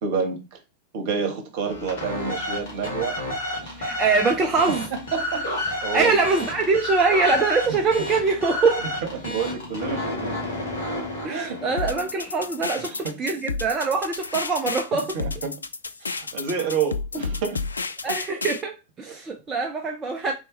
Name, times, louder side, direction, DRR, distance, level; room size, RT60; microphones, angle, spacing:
voice 1, 0.0-0.6 0.9-3.2 3.6-3.8 4.7-4.8 5.1-6.2 7.7-7.8 9.0-10.4 11.3-11.6 12.7-13.2 15.1-15.6 16.0-17.6 18.1-18.2 19.1-19.2, right 6 dB, 50° right, 1.2 m, -29 dB
sound 1, 1.6-12.2, left 1 dB, 55° left, 1.9 m, -31 dB
voice 2, 3.8-4.9 5.9-8.9 11.2-15.2 18.0-20.3, right 4 dB, 20° right, 0.6 m, -23 dB
sound 2, 11.8-18.6, left 4 dB, 75° left, 0.3 m, -31 dB
3.9 x 3.4 x 3.1 m
figure-of-eight pair, 90°, 0 cm